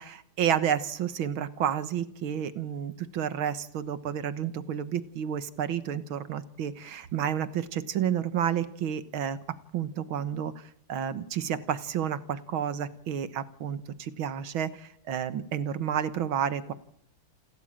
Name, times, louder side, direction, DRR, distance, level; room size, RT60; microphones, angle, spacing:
voice 1, 0.0-9.4 9.7-10.6 10.9-16.7, right 9 dB, 90° right, 13 dB, 2.1 m, -30 dB
28.5 x 13.0 x 9.0 m, 0.74 s
omnidirectional pair, 2.2 m